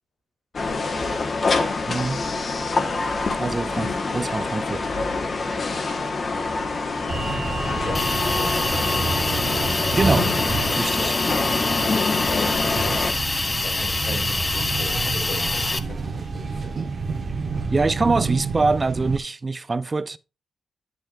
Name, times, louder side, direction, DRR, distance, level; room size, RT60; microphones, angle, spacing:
sound 1, 0.5-13.1, left 3 dB, 55° left, 1.3 m, -26 dB
voice 1, 0.6-1.4 3.3-3.8 5.4-5.8 7.8-9.1 11.0-11.2 11.8-13.1 13.6-16.8, left 3 dB, 75° left, 2.5 m, -38 dB
voice 2, 1.9-2.2 3.4-4.9 9.9-10.3 10.8-11.1 17.7-20.2, right 3 dB, 35° right, 0.5 m, -24 dB
sound 2, 7.1-19.2, right 4 dB, 55° right, 1.2 m, -29 dB
Hiss, 7.9-15.8, left 2 dB, 30° left, 0.7 m, -26 dB
8.9 x 7.8 x 2.5 m
supercardioid pair, 50°, 0 cm